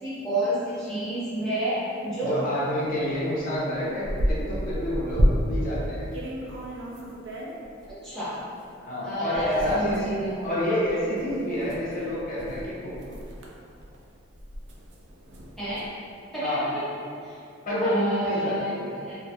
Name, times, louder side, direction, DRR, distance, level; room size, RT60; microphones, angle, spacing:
voice 1, 0.0-2.4 8.0-8.4 9.0-10.4 15.6-15.8 16.3-16.8 17.2-17.4 17.8-19.2, right 1 dB, 5° left, -13 dB, 0.8 m, -30 dB
voice 2, 2.2-6.1 8.8-10.1 10.4-13.1 16.4-16.7 17.6-18.8, equal, 45° left, -7 dB, 0.6 m, -28 dB
sound 1, 3.1-3.2 3.6-5.7 6.1-7.9 8.6-8.7 9.3-15.9, equal, 60° right, 0.4 m, -31 dB
2.3 x 2.0 x 2.8 m, 2.5 s
head